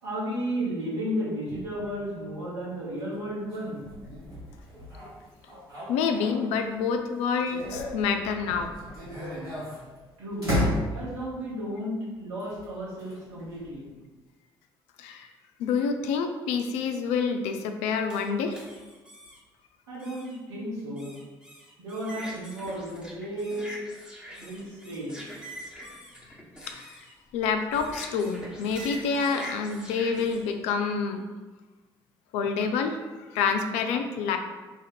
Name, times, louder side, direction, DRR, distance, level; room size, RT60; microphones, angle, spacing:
voice 1, 0.0-3.8 10.2-10.5 10.9-13.9 19.9-21.2 21.8-23.8 24.4-25.2, equal, 70° right, -8 dB, 1.4 m, -33 dB
sound 1, 1.4-6.8 7.2-11.4 12.4-13.8, left 1 dB, 85° right, 1.3 m, -35 dB
voice 2, 5.9-8.7 15.0-15.3 15.6-18.6 25.8-26.0 26.7-26.9 27.3-31.2 32.3-33.0 33.3-34.4, left 5 dB, 60° left, 6 dB, 0.4 m, -27 dB
sound 2, 18.1-19.4 20.0-20.4 21.0-30.5, equal, 5° right, 1.0 m, -44 dB
3.4 x 2.5 x 4.1 m, 1.3 s
figure-of-eight pair, 45°, 13 cm